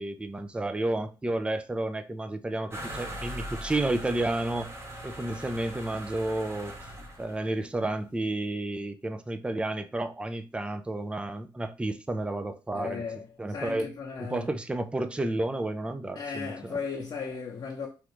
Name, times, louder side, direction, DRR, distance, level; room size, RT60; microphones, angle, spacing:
voice 1, 0.0-4.7 5.0-6.7 7.2-13.0 13.4-13.9 14.2-16.8, right 2 dB, 10° right, 0.4 m, -31 dB
sound 1, 2.7-7.5, right 1 dB, 30° right, 1.0 m, -40 dB
voice 2, 12.7-14.5 16.1-17.9, left 5 dB, 50° left, 0.7 m, -36 dB
3.2 x 2.4 x 3.0 m
cardioid pair, 65°, 10 cm